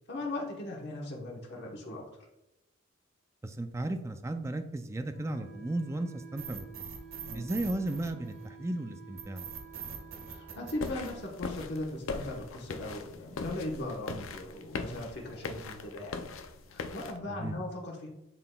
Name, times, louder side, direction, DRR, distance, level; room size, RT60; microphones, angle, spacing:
voice 1, 0.1-2.3 7.2-7.5 10.3-16.2 16.7-18.1, left 1 dB, 50° left, -2 dB, 1.1 m, -38 dB
voice 2, 3.4-6.6 7.3-9.4 17.3-17.6, right 1 dB, 15° right, 8 dB, 0.3 m, -35 dB
Wind instrument woodwind instrument, 5.1-11.3, right 7 dB, 60° right, 1.5 m, -52 dB
sound 1, 6.4-8.6 9.2-11.6, right 7 dB, 80° right, 1.5 m, -43 dB
sound 2, 10.8-17.2, left 4 dB, 70° left, 0.5 m, -40 dB
11.0 x 3.9 x 2.3 m, 0.90 s
head